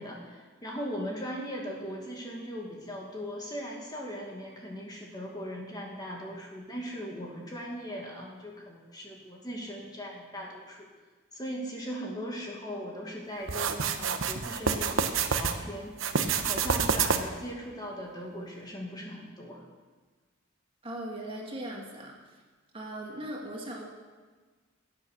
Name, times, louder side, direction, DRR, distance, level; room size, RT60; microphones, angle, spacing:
voice 1, 0.0-10.9 11.3-16.0 16.5-19.6, equal, 20° left, -1 dB, 2.0 m, -39 dB
sound 1, 13.5-15.6 16.0-17.4, right 6 dB, 65° right, 1.0 m, -28 dB
voice 2, 20.8-22.4 22.7-23.8, right 1 dB, 25° right, -1 dB, 2.3 m, -39 dB
16.0 x 8.8 x 6.5 m, 1.4 s
head